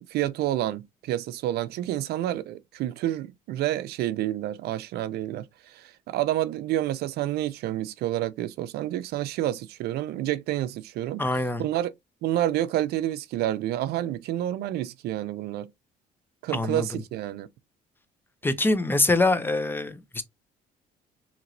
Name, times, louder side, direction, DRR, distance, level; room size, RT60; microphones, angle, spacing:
voice 1, 0.1-11.3 11.6-11.9 12.2-15.7 16.4-17.5, right 13 dB, 70° right, 0.4 m, -29 dB
voice 2, 11.2-11.6 16.5-16.9 18.4-20.2, left 2 dB, 10° left, 0.4 m, -24 dB
2.9 x 2.9 x 2.6 m
cardioid pair, 110°, 17 cm